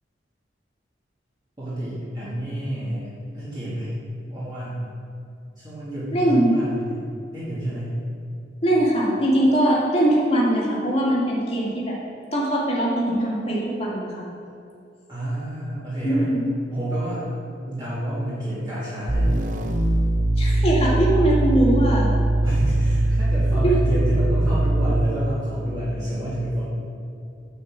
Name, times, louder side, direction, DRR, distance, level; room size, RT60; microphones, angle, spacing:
voice 1, 1.6-3.9 4.3-4.9 5.6-7.0 7.3-8.0 15.1-16.3 16.7-17.3 17.6-19.4 22.4-26.6, right 1 dB, 25° right, -11 dB, 2.4 m, -29 dB
voice 2, 6.1-6.5 8.6-12.0 12.3-14.3 16.0-16.4 20.4-22.1 23.6-23.7, right 1 dB, 35° left, -5 dB, 2.2 m, -21 dB
sound 1, 19.1-25.2, right 1 dB, 45° right, 0.8 m, -21 dB
9.3 x 5.6 x 7.4 m, 2.5 s
head